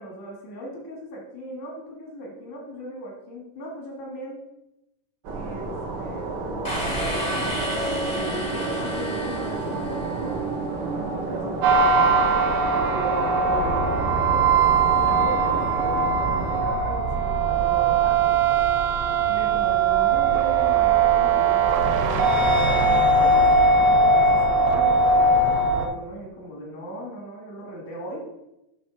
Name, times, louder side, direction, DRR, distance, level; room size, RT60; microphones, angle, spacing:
voice 1, 0.0-4.4 5.3-12.3 12.9-18.4 19.3-23.5 23.8-28.3, right 1 dB, 85° left, -2 dB, 3.4 m, -38 dB
sound 1, 5.2-16.6, right 3 dB, 85° right, 0.9 m, -31 dB
sound 2, 6.6-10.4, equal, 50° left, 0.5 m, -31 dB
sound 3, 11.6-25.9, right 3 dB, 70° right, 1.7 m, -20 dB
8.6 x 3.2 x 6.0 m, 0.90 s
omnidirectional pair, 3.3 m